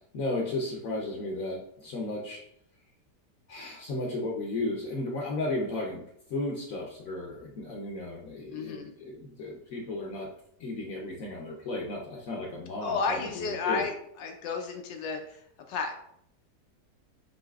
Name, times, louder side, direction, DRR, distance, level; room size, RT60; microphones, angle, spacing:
voice 1, 0.1-2.4 3.5-6.0 6.3-10.3 10.6-13.8, left 2 dB, 60° left, -1 dB, 0.9 m, -34 dB
voice 2, 8.5-8.9 12.8-15.4 15.7-15.9, left 4 dB, 90° left, 3 dB, 1.4 m, -32 dB
7.8 x 2.7 x 2.3 m, 0.70 s
omnidirectional pair, 1.9 m